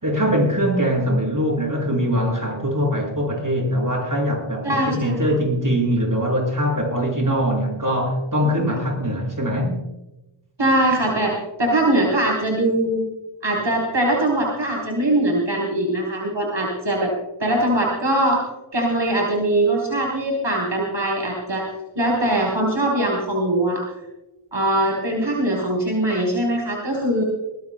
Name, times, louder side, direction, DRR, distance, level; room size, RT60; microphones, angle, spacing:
voice 1, 0.0-9.8, equal, 40° right, -1 dB, 6.2 m, -22 dB
voice 2, 4.6-5.3 10.6-13.0 13.4-17.1 17.4-18.4 18.7-21.6 22.0-23.8 24.5-27.2, right 1 dB, 60° right, -2 dB, 3.8 m, -21 dB
22.0 x 19.5 x 2.2 m, 0.99 s
wide cardioid pair, 50°, 49 cm